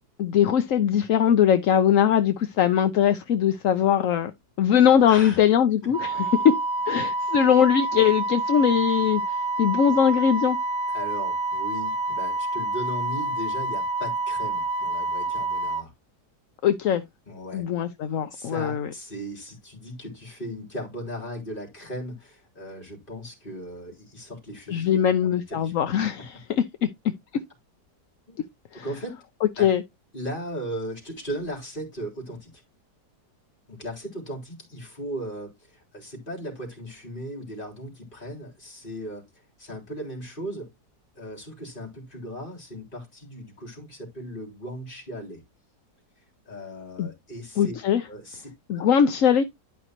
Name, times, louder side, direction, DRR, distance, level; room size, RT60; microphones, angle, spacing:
voice 1, 0.2-4.3 4.6-6.6 6.9-9.2 9.6-10.6 16.6-17.0 17.5-18.9 24.7-26.3 29.6-29.8 47.0-47.1 47.6-48.0 48.7-49.4, left 9 dB, 60° left, 1.0 m, -21 dB
voice 2, 5.1-5.4 10.9-15.9 17.3-17.6 18.3-25.7 28.3-28.4 28.7-29.2 29.6-29.7 30.1-32.6 33.7-40.7 41.2-45.4 46.5-47.8 48.1-48.9, equal, 30° left, 3.9 m, -37 dB
Wind instrument woodwind instrument, 5.9-15.8, right 2 dB, 45° right, 1.6 m, -28 dB
12.0 x 5.4 x 3.0 m
omnidirectional pair, 1.8 m